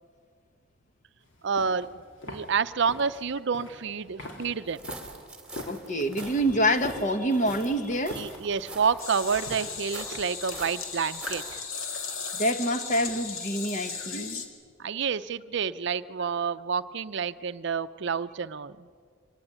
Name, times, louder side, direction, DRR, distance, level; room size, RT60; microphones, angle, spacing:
sound 1, 1.3-10.5, left 1 dB, 60° left, 3.6 m, -44 dB
voice 1, 1.4-1.9 2.3-4.8 8.1-11.6 14.8-18.9, right 6 dB, 60° right, 13 dB, 0.5 m, -29 dB
sound 2, 4.7-11.6, right 2 dB, 5° right, 2.6 m, -44 dB
voice 2, 5.7-8.3 12.3-14.4, equal, 35° left, 8 dB, 1.4 m, -27 dB
sound 3, 9.0-14.5, left 5 dB, 85° left, 2.4 m, -36 dB
24.5 x 17.0 x 9.8 m, 2.1 s
head